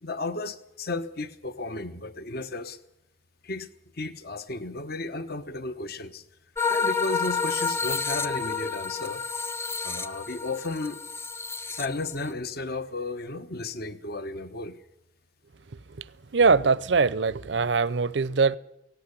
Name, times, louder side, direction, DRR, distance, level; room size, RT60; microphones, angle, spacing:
voice 1, 0.0-2.8 3.4-3.7 3.9-6.2 6.7-9.2 9.8-11.0 11.7-14.8, left 2 dB, 60° left, 1.1 m, -34 dB
sound 1, 6.6-12.3, left 5 dB, 15° left, 0.8 m, -30 dB
voice 2, 16.3-18.6, right 4 dB, 70° right, 0.7 m, -22 dB
17.5 x 17.0 x 9.9 m
head